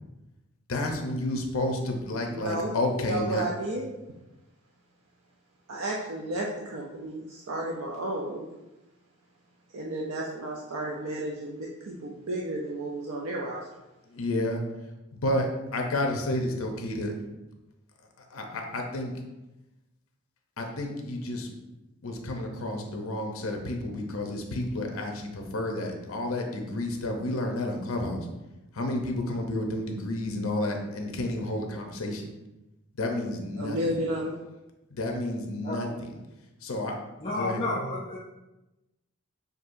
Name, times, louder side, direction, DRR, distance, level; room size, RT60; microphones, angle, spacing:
voice 1, 0.7-3.5 14.1-14.6 15.1-17.1 18.3-19.1 20.6-21.5 22.0-28.2 28.7-32.2 33.0-34.0 34.9-35.9 36.6-37.0 37.4-37.6, left 1 dB, 75° left, 2 dB, 0.7 m, -30 dB
voice 2, 2.3-3.9 5.7-8.5 9.7-13.6 33.6-34.3, right 1 dB, 80° right, -2 dB, 0.5 m, -32 dB
voice 3, 37.2-38.2, left 2 dB, 25° left, -7 dB, 0.5 m, -30 dB
6.1 x 2.7 x 2.6 m, 1.0 s
head